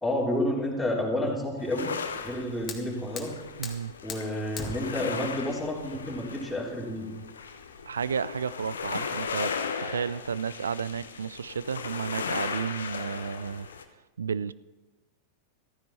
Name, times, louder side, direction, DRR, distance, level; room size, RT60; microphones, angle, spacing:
voice 1, 0.0-1.9 2.2-3.3 4.0-7.1, left 1 dB, 5° left, -4 dB, 3.7 m, -30 dB
sound 1, 1.6-13.8, left 6 dB, 70° left, 1.0 m, -37 dB
Fire, 2.1-8.0, left 5 dB, 25° left, 2.0 m, -44 dB
voice 2, 3.6-3.9 7.9-13.7 14.2-14.5, right 6 dB, 70° right, 19 dB, 0.4 m, -32 dB
14.5 x 14.5 x 4.3 m, 1.1 s
figure-of-eight pair, 90°, 0 cm